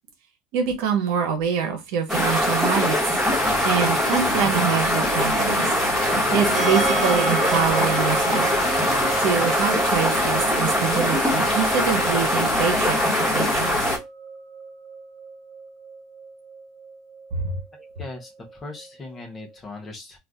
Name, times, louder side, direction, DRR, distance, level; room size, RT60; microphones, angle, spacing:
voice 1, 0.5-3.0 3.6-5.6 6.3-8.5 9.2-13.7 17.3-17.5, right 7 dB, 65° right, 0.9 m, -25 dB
sound 1, 2.1-14.0, equal, 5° right, 1.2 m, -22 dB
sound 2, 3.3-14.0, left 8 dB, 65° left, 0.4 m, -35 dB
sound 3, 6.5-19.5, right 4 dB, 40° right, 1.3 m, -34 dB
voice 2, 18.0-20.2, left 2 dB, 20° left, 0.7 m, -39 dB
2.5 x 2.5 x 3.4 m
cardioid pair, 155°, 0 cm